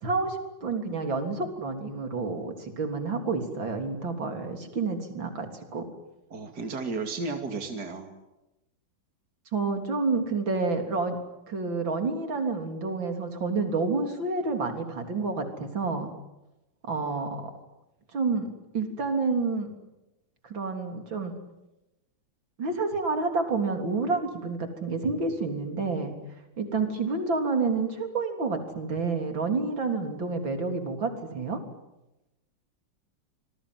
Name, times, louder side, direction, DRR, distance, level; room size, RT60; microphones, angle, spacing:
voice 1, 0.0-5.9 9.5-11.2 11.5-16.1 16.9-17.5 18.1-19.7 20.4-21.4 22.6-26.1 26.6-31.6, right 4 dB, 80° right, 5 dB, 4.2 m, -29 dB
voice 2, 6.3-8.1, right 3 dB, 55° right, 5 dB, 3.1 m, -33 dB
27.0 x 21.5 x 9.5 m, 0.97 s
omnidirectional pair, 2.1 m